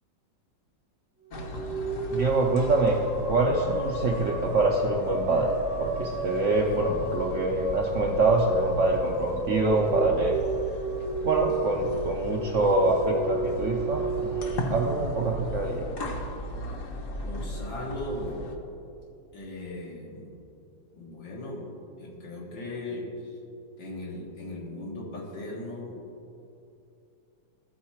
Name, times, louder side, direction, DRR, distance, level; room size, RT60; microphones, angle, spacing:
sound 1, 1.2-15.7, right 2 dB, 5° right, 0.5 m, -33 dB
sound 2, 1.3-18.5, equal, 55° left, 1.0 m, -37 dB
voice 1, 2.1-3.0 3.3-10.4 11.2-15.9, right 2 dB, 65° right, 0 dB, 0.7 m, -25 dB
voice 2, 17.2-18.4 19.3-20.3 20.9-21.7 22.0-23.3 23.8-26.0, left 1 dB, 90° left, -3 dB, 2.3 m, -38 dB
14.0 x 4.7 x 4.3 m, 2.6 s
omnidirectional pair, 2.0 m